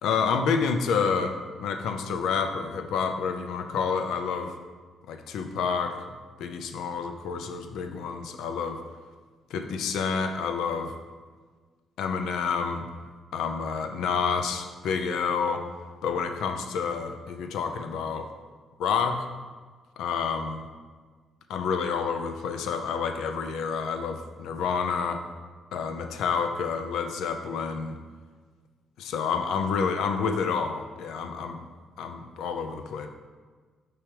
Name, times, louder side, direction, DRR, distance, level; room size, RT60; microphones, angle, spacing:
voice 1, 0.0-4.5 5.1-6.0 6.4-8.8 9.5-10.9 12.0-12.9 13.3-15.7 16.0-18.3 18.8-19.3 20.0-20.7 21.5-25.2 25.7-28.0 29.0-31.6 32.0-33.1, left 5 dB, 85° left, 6 dB, 0.5 m, -29 dB
6.0 x 4.8 x 3.3 m, 1.5 s
cardioid pair, 90°, 0 cm